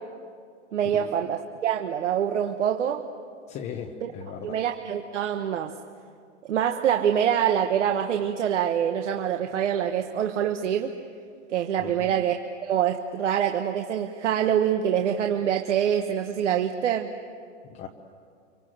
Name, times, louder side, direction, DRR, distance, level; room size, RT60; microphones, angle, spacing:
voice 1, 0.7-3.0 4.0-4.1 4.4-5.7 6.5-10.9 11.5-17.1, right 9 dB, 75° right, 5 dB, 1.4 m, -25 dB
voice 2, 3.5-4.6 11.8-12.1 17.7-17.9, left 7 dB, 20° left, 3 dB, 0.9 m, -38 dB
27.0 x 24.5 x 7.9 m, 2.2 s
hypercardioid pair, 160°, 36 cm